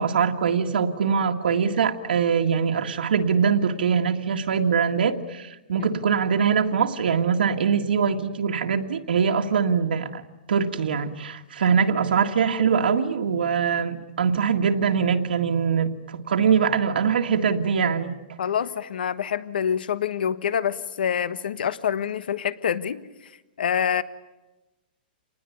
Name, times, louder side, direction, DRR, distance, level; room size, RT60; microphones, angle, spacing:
voice 1, 0.0-10.2 10.5-18.2, right 6 dB, 70° right, 4 dB, 1.9 m, -23 dB
voice 2, 18.4-23.0 23.6-24.0, left 8 dB, 65° left, 15 dB, 1.3 m, -26 dB
27.5 x 20.0 x 9.5 m, 1.0 s
hypercardioid pair, 180°, 5 cm